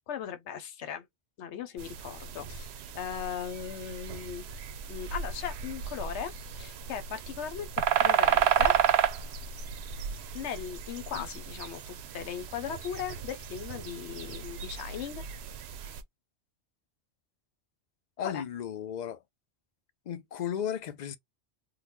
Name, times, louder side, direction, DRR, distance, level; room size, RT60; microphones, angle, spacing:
voice 1, 0.1-1.0 1.4-2.7 2.9-4.4 4.9-7.7 8.0-8.8 10.3-15.2 18.2-18.4, left 8 dB, 80° left, 0.9 m, -38 dB
sound 1, 1.8-16.0, right 8 dB, 75° right, 0.8 m, -32 dB
voice 2, 18.2-19.2 20.1-21.2, left 9 dB, 55° left, 0.5 m, -35 dB
3.8 x 2.1 x 3.0 m
omnidirectional pair, 1.1 m